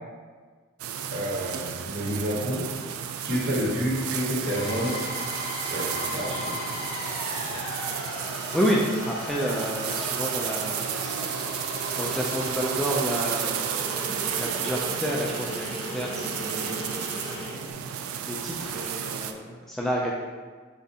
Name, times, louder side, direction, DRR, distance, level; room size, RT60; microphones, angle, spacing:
sound 1, 0.8-19.3, right 8 dB, 90° right, 0.3 m, -32 dB
voice 1, 1.1-2.7 3.2-5.0 5.6-6.6 7.4-7.6, equal, 55° right, -7 dB, 1.4 m, -29 dB
sound 2, 4.4-17.6, left 1 dB, 25° left, 0.9 m, -36 dB
voice 2, 8.3-11.6 12.0-17.9 18.2-20.1, equal, ahead, -4 dB, 0.3 m, -30 dB
6.7 x 2.5 x 2.7 m, 1.5 s
head